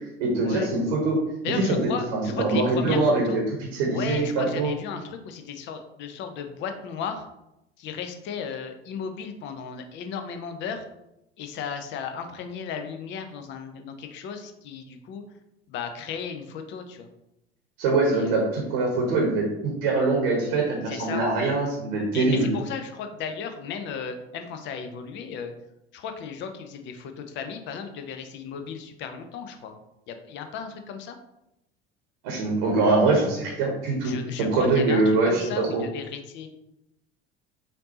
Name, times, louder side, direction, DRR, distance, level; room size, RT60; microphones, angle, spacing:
voice 1, 0.2-1.2 1.6-3.4 3.7-4.7 17.8-22.5 32.2-35.8, right 3 dB, 55° right, -1 dB, 1.0 m, -23 dB
voice 2, 1.4-3.4 3.9-7.3 7.8-10.8 11.4-15.2 15.7-17.1 18.1-18.4 20.9-21.2 22.1-25.5 25.9-29.7 30.1-31.2 34.0-36.5, left 6 dB, 35° left, 7 dB, 0.6 m, -35 dB
5.1 x 2.7 x 2.8 m, 0.87 s
figure-of-eight pair, 70°, 31 cm